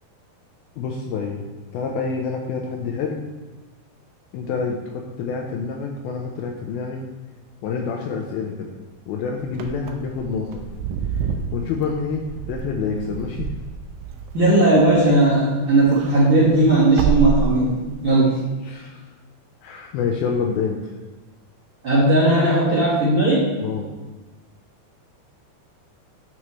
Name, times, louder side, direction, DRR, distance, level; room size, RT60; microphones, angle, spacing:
voice 1, 0.8-1.5 1.7-3.2 4.3-7.0 7.6-8.7 9.1-10.6 11.1-11.2 11.5-13.5 18.3-19.0 19.6-20.8 23.6-23.9, left 5 dB, 80° left, 1 dB, 2.2 m, -27 dB
Wind / Car, 9.5-15.3 15.6-18.1, right 7 dB, 80° right, 2.0 m, -28 dB
voice 2, 14.3-17.7 18.0-18.3 21.8-23.4, right 2 dB, 50° right, -8 dB, 1.7 m, -17 dB
9.9 x 6.1 x 3.1 m, 1.2 s
omnidirectional pair, 4.8 m